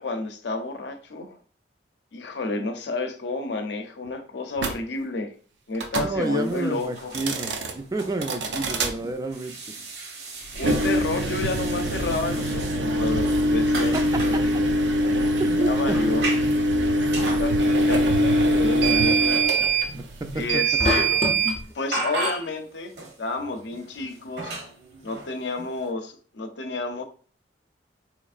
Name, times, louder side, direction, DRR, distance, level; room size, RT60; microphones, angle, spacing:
voice 1, 0.0-1.4 2.1-5.3 5.7-7.2 10.5-14.5 15.6-16.3 17.4-19.4 20.3-21.1 21.7-22.9 23.2-24.5 25.0-27.0, left 3 dB, 75° left, 0.6 m, -30 dB
sound 1, 4.6-4.8 5.7-6.1 7.0-7.7 8.2-8.9 10.5-21.6, right 1 dB, 85° right, 0.6 m, -23 dB
voice 2, 6.0-9.6 13.9-14.0 15.4-16.2 19.9-20.0 20.3-20.4, right 2 dB, 20° right, 0.4 m, -30 dB
sound 2, 6.2-13.0 13.3-14.4 14.8-17.5 17.9-20.5 20.8-20.9 21.2-21.4 21.9-22.6 22.9-25.9, right 2 dB, 65° right, 1.0 m, -37 dB
sound 3, 20.8-21.7, left 2 dB, 35° left, 0.6 m, -26 dB
4.3 x 3.0 x 2.4 m
head